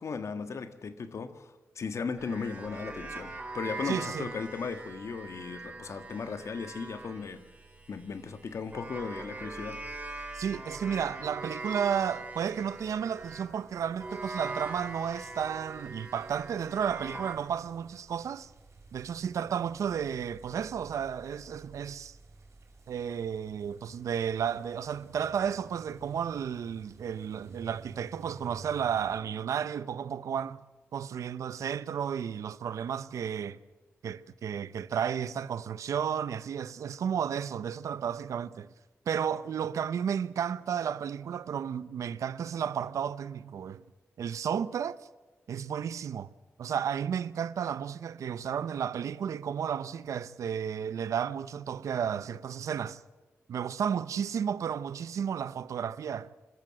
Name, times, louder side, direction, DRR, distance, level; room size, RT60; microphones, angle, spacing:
voice 1, 0.0-7.4 7.9-9.8, left 5 dB, 65° left, 1.5 m, -37 dB
sound 1, 2.2-13.5 14.0-17.3, right 2 dB, 25° right, 4.4 m, -42 dB
voice 2, 3.9-4.3 10.3-18.5 18.9-22.2 22.9-30.6 30.9-33.6 34.0-38.7 39.1-43.8 44.2-45.0 45.5-46.3 46.6-53.0 53.5-56.3, right 8 dB, 90° right, 0.7 m, -33 dB
sound 2, 12.7-29.2, right 3 dB, 65° right, 5.0 m, -54 dB
26.0 x 14.0 x 7.5 m
cardioid pair, 75°, 5 cm